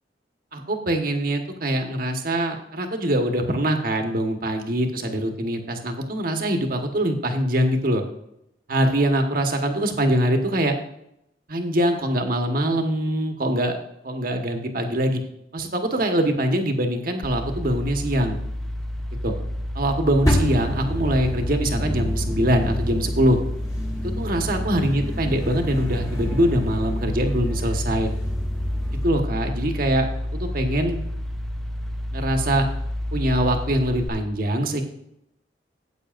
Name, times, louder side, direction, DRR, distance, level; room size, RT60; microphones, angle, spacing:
voice 1, 0.5-8.0 8.7-10.8 11.5-13.8 14.0-15.2 15.5-18.4 19.2-19.3 19.7-23.4 24.0-28.1 29.0-31.0 32.1-32.7 33.1-34.8, right 1 dB, 50° right, 4 dB, 1.3 m, -23 dB
sound 1, 17.2-34.1, left 1 dB, 5° left, 0.6 m, -29 dB
sound 2, 20.2-29.0, equal, 20° left, 1.5 m, -30 dB
14.0 x 8.5 x 2.5 m, 0.79 s
head